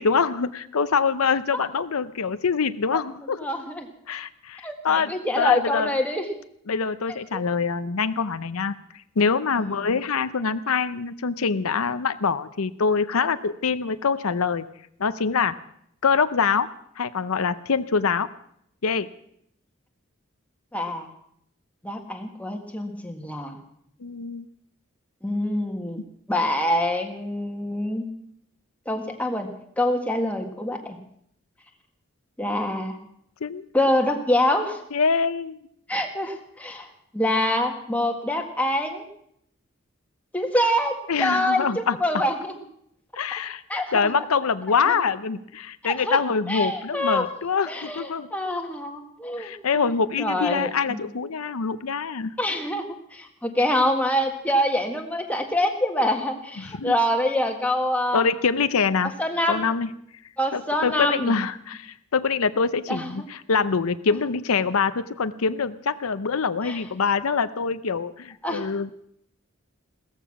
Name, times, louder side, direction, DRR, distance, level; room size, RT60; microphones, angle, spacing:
voice 1, 0.0-3.5 4.1-5.9 6.7-8.7 9.2-14.7 15.0-15.5 16.0-16.7 17.0-18.3 18.8-19.1 24.0-24.5 33.4-33.6 34.9-35.6 41.1-42.0 43.2-43.6 43.9-48.3 49.4-52.3 56.6-57.0 58.1-59.1 59.5-59.9 60.5-68.9, left 5 dB, 90° left, 13 dB, 0.7 m, -24 dB
voice 2, 3.4-3.9 4.6-6.3 7.1-7.2 9.6-9.9 20.7-21.1 21.8-23.6 25.2-26.0 26.3-28.1 28.9-31.0 32.4-32.9 33.7-34.8 35.9-39.0 40.3-42.6 43.7-44.1 44.9-45.0 45.8-46.2 46.5-47.3 47.7-49.5 50.2-51.0 52.4-58.2 59.2-59.7 60.4-61.3 62.9-63.1 66.6-66.8 68.4-68.7, left 1 dB, 5° left, 3 dB, 1.6 m, -25 dB
16.5 x 14.0 x 6.0 m, 0.70 s
head